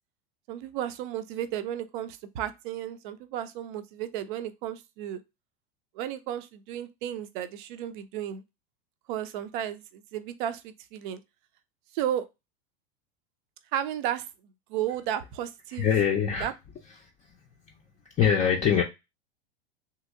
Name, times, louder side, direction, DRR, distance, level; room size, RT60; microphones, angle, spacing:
voice 1, 0.5-5.2 5.9-8.4 9.1-11.2 11.9-12.3 13.7-14.3 14.7-16.0 16.4-16.5, right 11 dB, 55° right, 0.5 m, -33 dB
voice 2, 15.7-16.5 17.0-17.4 17.7-17.8 18.2-18.8, left 8 dB, 25° left, 0.5 m, -24 dB
3.0 x 2.8 x 2.5 m
hypercardioid pair, 100°, 30 cm